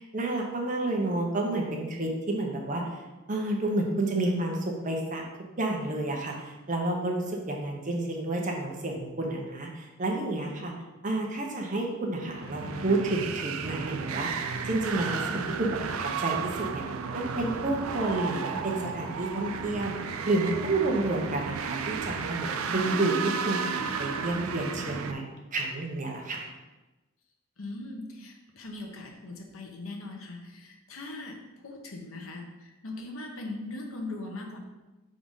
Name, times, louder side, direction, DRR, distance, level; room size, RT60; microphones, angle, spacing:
voice 1, 0.0-2.8 3.3-5.2 5.6-10.7 11.0-16.8 17.1-19.9 20.2-23.6 24.0-25.2 25.5-26.5, right 2 dB, 40° right, 0 dB, 1.0 m, -30 dB
sound 1, 12.2-25.1, right 5 dB, 85° right, 0.5 m, -33 dB
voice 2, 27.6-34.6, left 2 dB, 80° left, 2 dB, 1.0 m, -40 dB
5.0 x 3.8 x 5.5 m, 1.1 s
head